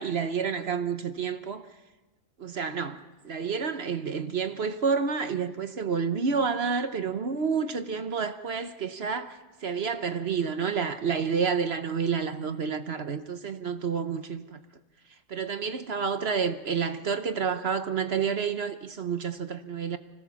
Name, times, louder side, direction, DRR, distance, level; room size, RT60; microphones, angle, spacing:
voice 1, 0.0-1.7 2.4-14.6 15.3-20.0, right 6 dB, 50° right, 1.1 m, -29 dB
25.5 x 17.0 x 7.1 m
omnidirectional pair, 1.5 m